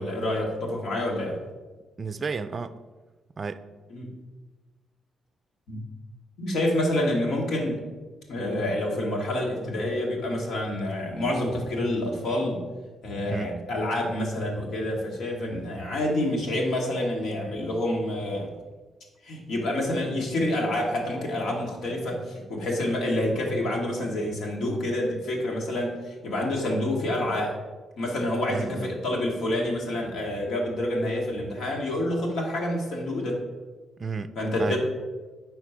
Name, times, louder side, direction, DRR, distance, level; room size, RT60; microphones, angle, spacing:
voice 1, 0.0-1.3 3.9-4.1 5.7-5.8 6.4-7.8 8.3-12.6 13.0-18.5 19.2-27.6 28.0-33.4 34.3-34.8, left 1 dB, 80° left, 1.6 m, -28 dB
voice 2, 2.0-2.8 3.4-3.6 13.3-13.5 28.5-28.9 34.0-34.8, right 4 dB, 40° right, 0.3 m, -32 dB
4.7 x 4.2 x 5.8 m
cardioid pair, 80°, 0 cm